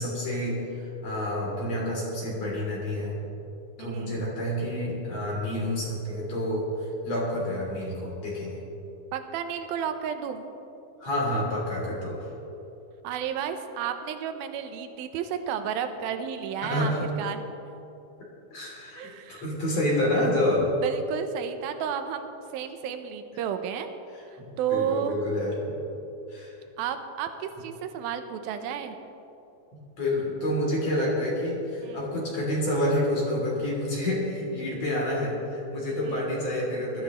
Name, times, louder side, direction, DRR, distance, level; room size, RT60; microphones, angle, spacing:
voice 1, 0.0-3.2 3.8-6.7 7.0-8.6 11.0-12.3 16.6-17.1 18.5-20.7 24.1-25.7 26.3-26.5 30.0-37.0, left 1 dB, 45° left, -5 dB, 4.0 m, -28 dB
voice 2, 3.8-4.2 9.1-10.4 13.0-16.9 17.2-17.4 19.0-19.4 20.8-23.9 24.6-25.2 26.8-29.0 31.8-32.1 36.1-36.2, right 8 dB, 80° right, 8 dB, 2.6 m, -32 dB
20.0 x 13.5 x 3.1 m, 3.0 s
omnidirectional pair, 4.3 m